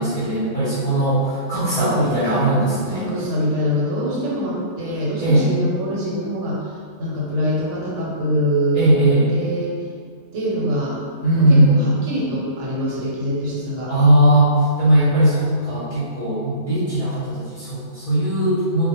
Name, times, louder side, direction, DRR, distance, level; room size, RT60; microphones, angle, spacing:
voice 1, 0.0-3.1 5.2-5.5 8.7-9.2 11.2-11.8 13.9-18.9, right 1 dB, 40° left, -11 dB, 0.5 m, -18 dB
voice 2, 1.8-2.3 2.9-6.6 7.0-9.7 10.3-11.0 11.4-13.9 15.9-16.1, equal, 90° right, -5 dB, 1.0 m, -24 dB
2.1 x 2.0 x 2.8 m, 2.1 s
omnidirectional pair, 1.2 m